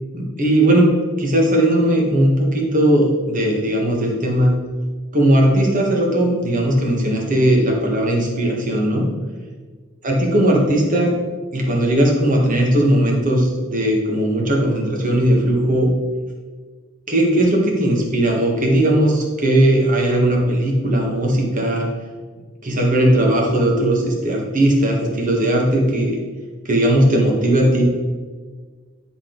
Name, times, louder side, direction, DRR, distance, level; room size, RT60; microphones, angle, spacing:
voice 1, 0.1-0.9 1.2-4.6 5.1-9.1 10.0-11.1 11.5-15.9 17.1-21.9 22.6-26.2 26.6-27.9, right 1 dB, 40° right, -1 dB, 1.6 m, -17 dB
9.9 x 4.1 x 3.9 m, 1.5 s
head